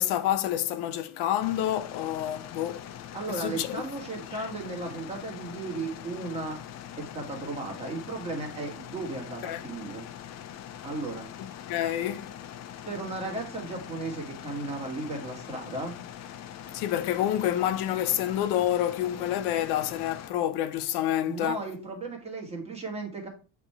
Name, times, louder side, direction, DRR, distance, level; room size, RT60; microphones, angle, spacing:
voice 1, 0.0-2.8 3.4-3.9 4.3-4.4 9.4-9.6 11.4-12.3 16.7-21.6, left 12 dB, 80° left, 0.9 m, -28 dB
sound 1, 1.4-20.3, left 10 dB, 45° left, 0.6 m, -43 dB
voice 2, 3.1-6.6 6.9-10.1 10.8-11.3 12.9-15.9 21.3-23.3, right 2 dB, 15° right, 1.9 m, -35 dB
8.3 x 3.6 x 4.3 m
cardioid pair, 160°, 39 cm